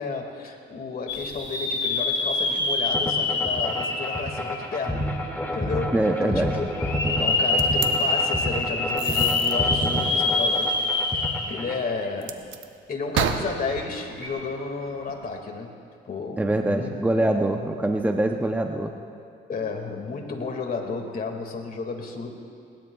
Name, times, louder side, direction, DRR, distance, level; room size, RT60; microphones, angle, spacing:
voice 1, 0.0-5.1 5.5-6.8 7.1-12.4 12.9-15.7 16.1-17.0 19.5-22.3, left 4 dB, 45° left, 2 dB, 2.2 m, -32 dB
sound 1, 1.1-5.0 5.6-5.7 6.7-11.7 12.0-12.1 14.1-14.3, left 3 dB, 65° left, 1.9 m, -25 dB
sound 2, 2.9-11.8, left 1 dB, 10° left, 2.2 m, -29 dB
voice 2, 5.9-6.5 16.4-18.9, right 1 dB, 10° right, 3 dB, 0.8 m, -24 dB
sound 3, 7.6-7.9 9.0-9.5 12.2-12.7 13.1-15.4, right 8 dB, 75° right, 0.9 m, -31 dB
20.5 x 19.5 x 2.4 m, 2.5 s
cardioid pair, 90°, 20 cm